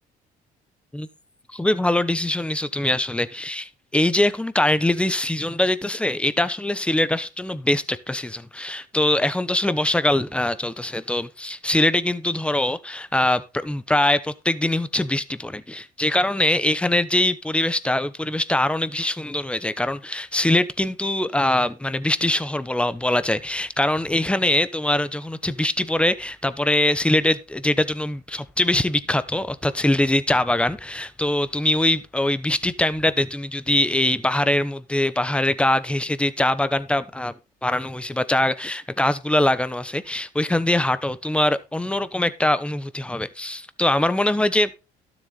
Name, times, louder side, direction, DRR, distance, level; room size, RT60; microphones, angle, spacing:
voice 1, 1.5-37.3 37.6-44.7, left 1 dB, 5° left, 1.0 m, -23 dB
12.5 x 7.4 x 4.2 m
cardioid pair, 110°, 17 cm